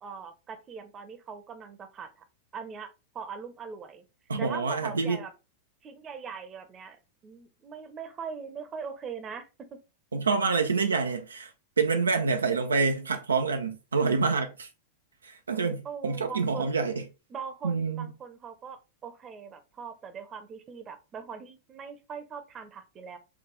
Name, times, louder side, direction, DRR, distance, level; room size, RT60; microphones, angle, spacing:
voice 1, 0.0-2.2 2.5-2.9 3.1-4.0 4.4-5.3 5.8-9.8 15.8-16.7 17.3-23.2, right 6 dB, 25° right, 0.8 m, -41 dB
voice 2, 4.3-5.2 10.1-11.5 11.8-14.7 15.2-17.0 17.6-18.1, right 4 dB, 75° right, 0.4 m, -27 dB
4.8 x 2.4 x 3.8 m
figure-of-eight pair, 90°, 0 cm